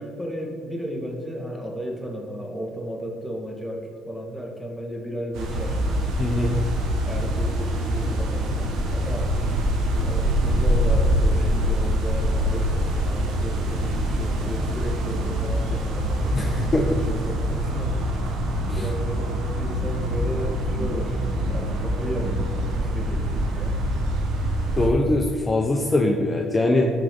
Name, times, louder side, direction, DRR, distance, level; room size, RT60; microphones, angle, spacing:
voice 1, 0.0-5.8 7.0-9.3 10.0-16.6 16.9-18.0 18.7-21.2 21.5-23.8, equal, ahead, 0 dB, 2.0 m, -34 dB
sound 1, 5.3-24.9, equal, 80° right, 1.5 m, -24 dB
voice 2, 6.2-6.6 16.3-17.0 18.7-18.8 24.8-26.9, left 2 dB, 25° left, 2 dB, 0.9 m, -22 dB
14.5 x 5.1 x 3.9 m, 2.2 s
supercardioid pair, 70°, 0 cm